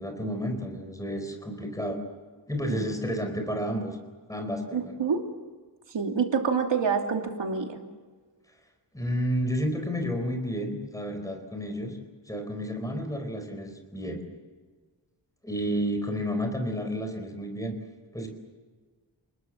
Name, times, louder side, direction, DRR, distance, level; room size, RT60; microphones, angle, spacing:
voice 1, 0.0-2.0 2.5-4.0 4.3-4.9 8.9-12.0 12.3-14.2 15.4-17.7 18.1-18.3, equal, 10° left, 5 dB, 4.2 m, -31 dB
voice 2, 4.7-5.2 5.9-7.8, right 6 dB, 85° right, 3 dB, 2.9 m, -27 dB
29.0 x 21.0 x 7.4 m, 1.4 s
wide cardioid pair, 160°, 43 cm